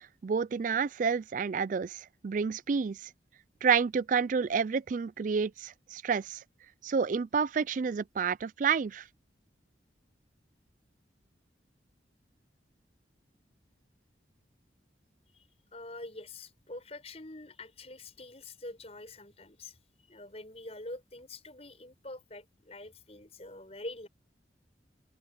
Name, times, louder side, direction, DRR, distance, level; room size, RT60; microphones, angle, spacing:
voice 1, 0.2-3.0 3.6-6.4 6.8-9.0, right 6 dB, 45° right, 0.3 m, -29 dB
voice 2, 15.7-19.8 20.1-24.1, left 2 dB, 35° left, 6.5 m, -45 dB
open air
head